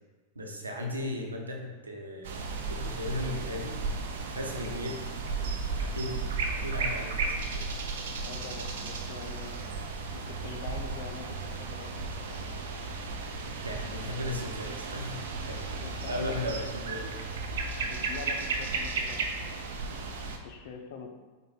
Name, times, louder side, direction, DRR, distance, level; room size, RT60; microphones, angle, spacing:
voice 1, 0.3-2.3 2.7-3.8 4.3-5.0 5.4-5.5 5.8-6.2 6.5-7.6 13.6-15.1 15.4-17.1, left 1 dB, 75° right, 1 dB, 1.0 m, -36 dB
sound 1, 2.2-20.4, right 3 dB, 60° right, 0.7 m, -34 dB
voice 2, 8.2-9.6 10.1-12.4 13.7-14.3 15.8-16.5 17.9-19.5 19.9-21.1, left 5 dB, 55° left, 5 dB, 0.7 m, -44 dB
5.4 x 4.3 x 4.2 m, 1.3 s
figure-of-eight pair, 90°, 0 cm